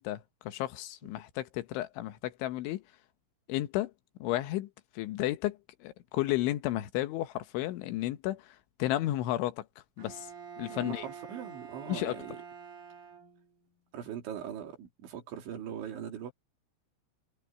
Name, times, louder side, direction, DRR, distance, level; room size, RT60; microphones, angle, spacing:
voice 1, 0.0-2.8 3.5-3.9 4.2-4.7 5.0-9.7 10.0-10.3 10.6-11.1 11.9-12.3, left 15 dB, 85° left, 3.6 m, -33 dB
Bowed string instrument, 10.0-13.7, right 7 dB, 45° right, 5.0 m, -47 dB
voice 2, 10.7-12.4 13.9-16.3, right 9 dB, 80° right, 5.6 m, -41 dB
omnidirectional pair, 5.3 m